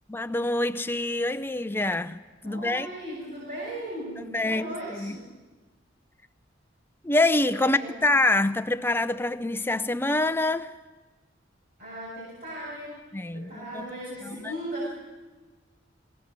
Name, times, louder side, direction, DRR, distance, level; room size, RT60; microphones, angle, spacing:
voice 1, 0.1-2.9 4.3-4.7 5.0-5.2 7.0-10.7 13.1-13.9 14.2-14.5, left 2 dB, 10° left, 0.6 m, -26 dB
voice 2, 2.4-5.2 7.3-7.9 11.8-14.9, right 1 dB, 50° right, 7.8 m, -37 dB
20.5 x 19.0 x 7.5 m
head